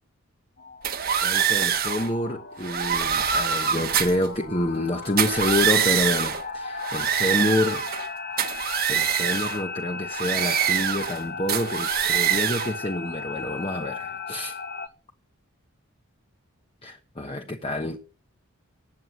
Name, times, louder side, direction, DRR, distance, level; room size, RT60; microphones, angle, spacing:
sound 1, 0.6-14.9, left 4 dB, 45° left, 1.0 m, -36 dB
sound 2, 0.8-2.1 2.6-4.3 5.1-6.4 6.8-8.1 8.4-9.6 10.1-11.2 11.5-12.7, right 8 dB, 40° right, 1.4 m, -24 dB
voice 1, 1.2-7.9 8.9-14.6 16.8-18.0, left 1 dB, 25° left, 1.1 m, -28 dB
19.0 x 7.8 x 8.3 m
head